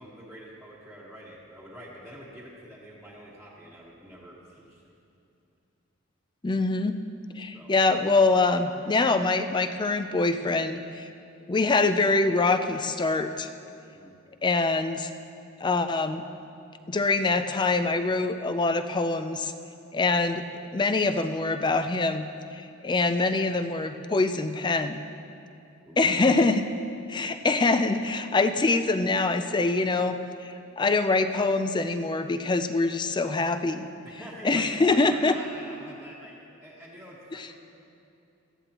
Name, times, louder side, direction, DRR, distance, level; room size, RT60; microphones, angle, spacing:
voice 1, 0.0-4.8 7.5-7.7 13.9-14.1 25.8-26.3 27.3-27.5 34.2-37.6, equal, ahead, -9 dB, 1.4 m, -46 dB
voice 2, 6.4-7.0 7.3-11.1 11.5-13.5 14.4-15.1 15.6-16.2 16.9-19.5 19.9-20.4 20.7-22.3 22.5-25.0 26.0-26.7 27.1-33.9 34.4-35.3 37.4-37.5, left 3 dB, 20° left, 9 dB, 0.4 m, -24 dB
18.0 x 13.5 x 3.0 m, 2.6 s
head